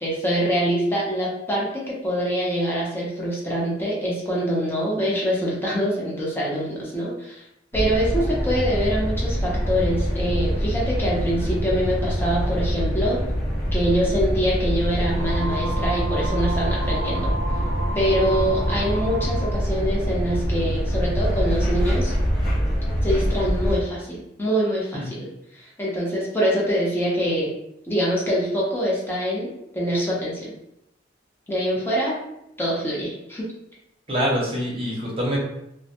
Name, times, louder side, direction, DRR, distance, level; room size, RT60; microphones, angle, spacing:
voice 1, 0.0-7.4 7.7-13.2 13.7-17.3 17.9-22.1 23.0-25.3 25.5-27.5 27.9-29.5 29.7-30.5 31.5-32.2 32.6-33.5, equal, 10° left, -5 dB, 0.6 m, -24 dB
sound 1, 7.7-23.8, equal, 50° left, 0.8 m, -24 dB
sound 2, 15.1-19.6, right 2 dB, 70° right, 0.3 m, -32 dB
voice 2, 34.1-35.4, equal, 30° right, -4 dB, 0.7 m, -25 dB
2.2 x 2.1 x 2.8 m, 0.82 s
head